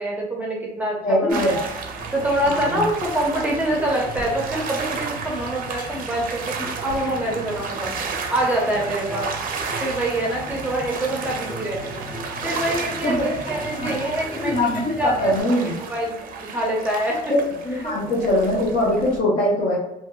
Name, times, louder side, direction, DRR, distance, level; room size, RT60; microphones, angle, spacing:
voice 1, 0.0-1.6 2.1-7.9 8.3-9.3 9.8-12.1 12.4-13.1 13.5-14.5 15.0-15.3 15.9-17.2 17.8-18.2, right 1 dB, 10° right, -3 dB, 0.6 m, -25 dB
voice 2, 1.0-1.6 2.4-2.8 13.0-13.3 13.8-13.9 14.4-15.7 17.3-19.8, left 1 dB, 50° left, -5 dB, 0.7 m, -22 dB
sound 1, 1.3-19.2, right 5 dB, 55° right, 0.5 m, -33 dB
sound 2, 2.0-15.4, equal, 30° left, 1.1 m, -37 dB
2.6 x 2.3 x 2.2 m, 0.92 s
cardioid pair, 110°, 17 cm